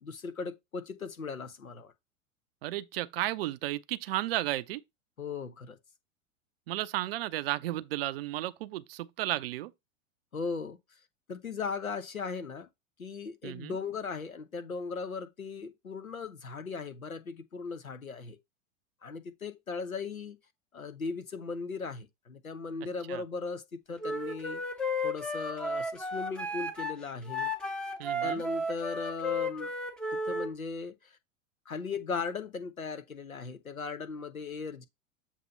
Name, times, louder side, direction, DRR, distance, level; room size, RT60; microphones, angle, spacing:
voice 1, 0.0-1.9 5.2-5.8 10.3-10.8 11.3-12.7 13.0-18.4 19.0-20.4 20.7-24.6 25.0-27.5 28.2-29.7 30.1-31.2 31.7-34.8, left 4 dB, 90° left, 0.9 m, -38 dB
voice 2, 2.6-4.8 6.7-9.7 13.4-13.8 23.1-23.2 28.0-28.4, right 15 dB, 45° right, 0.5 m, -33 dB
Wind instrument woodwind instrument, 24.0-30.5, left 1 dB, ahead, 0.6 m, -33 dB
7.4 x 2.8 x 5.4 m
figure-of-eight pair, 95°, 40 cm